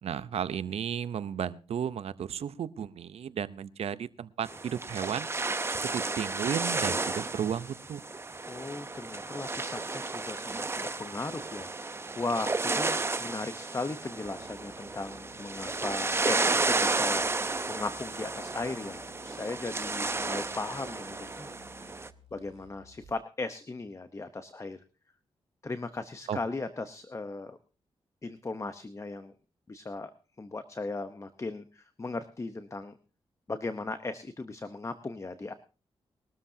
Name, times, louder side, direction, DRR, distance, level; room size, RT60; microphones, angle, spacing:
voice 1, 0.0-5.3 5.8-8.0 26.3-26.4, right 8 dB, 75° right, 15 dB, 0.8 m, -34 dB
sound 1, 4.4-22.1, right 3 dB, 25° right, 0.8 m, -32 dB
voice 2, 8.5-21.9 22.3-24.8 25.6-27.6 28.2-29.3 29.7-30.1 30.4-33.0 33.5-35.5, left 3 dB, 30° left, 10 dB, 0.9 m, -37 dB
sound 2, 14.2-23.2, left 5 dB, 90° right, 2.4 m, -59 dB
21.5 x 13.0 x 2.8 m, 0.34 s
cardioid pair, 80°, 11 cm